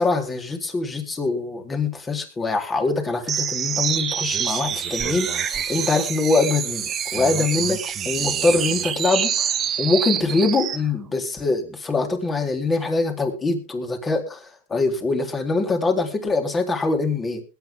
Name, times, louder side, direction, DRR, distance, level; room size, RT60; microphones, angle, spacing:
voice 1, 0.0-17.4, left 3 dB, 15° left, 4 dB, 3.8 m, -23 dB
sound 1, 3.3-10.8, right 8 dB, 30° right, 1.6 m, -26 dB
21.0 x 9.6 x 3.7 m, 0.32 s
hypercardioid pair, 120°, 0 cm